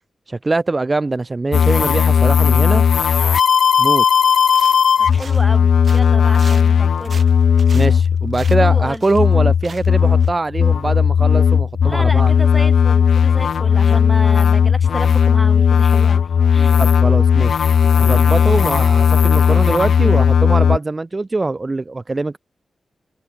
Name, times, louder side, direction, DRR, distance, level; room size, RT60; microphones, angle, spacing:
voice 1, 0.3-2.8 3.8-4.0 7.7-12.3 16.7-17.6 18.0-22.4, right 3 dB, 35° right, 0.8 m, -22 dB
sound 1, 1.5-20.8, left 7 dB, 80° left, 0.6 m, -15 dB
sound 2, 4.4-5.6 5.8-9.3 9.6-9.9 10.2-10.3, right 5 dB, 65° right, 1.5 m, -39 dB
voice 2, 5.0-7.2 8.5-9.0 11.8-16.8, equal, 5° left, 3.3 m, -31 dB
cardioid pair, 45°, 0 cm